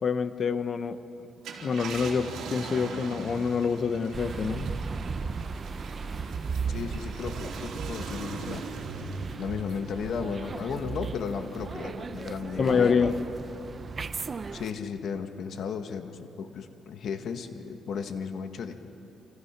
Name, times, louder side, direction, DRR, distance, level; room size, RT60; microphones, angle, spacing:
voice 1, 0.0-1.0 1.6-4.7 12.6-13.1, left 5 dB, 45° left, 11 dB, 1.1 m, -26 dB
Car, 1.3-12.1 12.6-12.7 14.8-15.0, right 4 dB, 75° right, 3.2 m, -41 dB
sound 1, 4.1-14.7, right 5 dB, 35° right, 0.9 m, -36 dB
voice 2, 6.7-8.7 9.4-13.1 14.0-14.2 14.5-18.8, left 6 dB, 65° left, 7 dB, 1.7 m, -35 dB
28.0 x 26.0 x 6.0 m, 2.9 s
cardioid pair, 90°, 0 cm